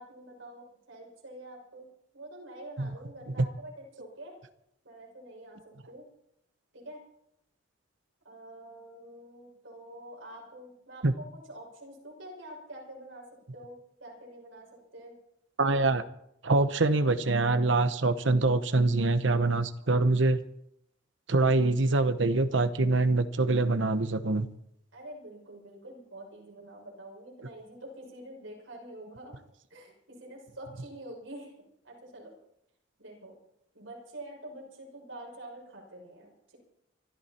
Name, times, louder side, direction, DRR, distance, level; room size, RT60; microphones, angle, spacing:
voice 1, 0.0-1.9 2.1-4.4 4.8-5.6 5.9-6.0 6.7-7.0 8.2-13.3 13.5-15.1 24.9-29.3 29.7-31.5 31.8-32.3 33.0-33.3 33.7-36.6, right 1 dB, 85° right, -1 dB, 6.2 m, -46 dB
voice 2, 15.6-16.0 16.4-20.4 21.3-24.5, right 2 dB, 70° right, 11 dB, 1.0 m, -24 dB
24.5 x 13.0 x 4.4 m, 0.77 s
head